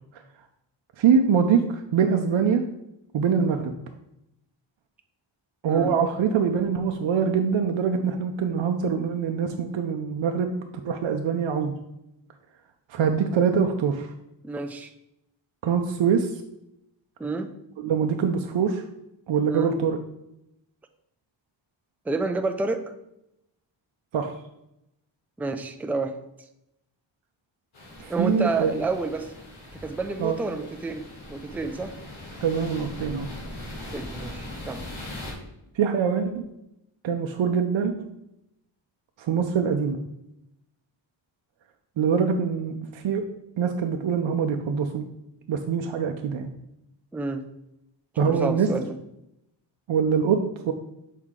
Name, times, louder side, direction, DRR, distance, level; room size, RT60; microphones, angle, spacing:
voice 1, 1.0-2.6 3.1-3.7 5.6-10.5 10.8-11.7 12.9-14.1 15.6-16.3 17.8-18.8 19.3-20.0 24.1-24.3 28.0-28.7 30.2-30.3 32.4-33.3 35.8-36.4 37.0-38.1 39.2-40.0 42.0-43.3 43.6-45.1 45.5-46.5 48.2-48.7 49.9-50.7, right 6 dB, 70° right, 4 dB, 0.6 m, -24 dB
voice 2, 14.4-14.9 17.2-17.5 19.5-19.7 22.1-22.9 25.4-26.2 28.1-29.3 29.8-31.0 31.3-32.0 33.9-34.8 47.1-47.5 48.2-49.0, right 3 dB, 5° right, 7 dB, 0.3 m, -29 dB
sound 1, 27.7-35.3, left 1 dB, 90° left, 1.9 m, -40 dB
6.3 x 4.6 x 3.7 m, 0.86 s
wide cardioid pair, 115°, 47 cm